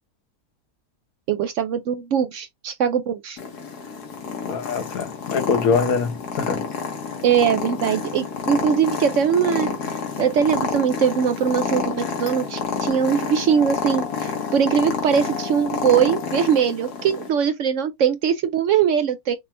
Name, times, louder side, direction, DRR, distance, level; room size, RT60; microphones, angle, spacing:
voice 1, 1.3-3.4 7.2-19.4, right 8 dB, 65° right, 0.8 m, -21 dB
Purr, 3.4-17.3, left 5 dB, 90° left, 1.7 m, -29 dB
voice 2, 4.4-6.6, left 5 dB, 70° left, 1.4 m, -23 dB
sound 1, 11.5-12.5 13.4-14.6 15.2-16.5 17.0-17.1, left 8 dB, 45° left, 1.1 m, -39 dB
6.0 x 2.7 x 3.3 m
omnidirectional pair, 1.6 m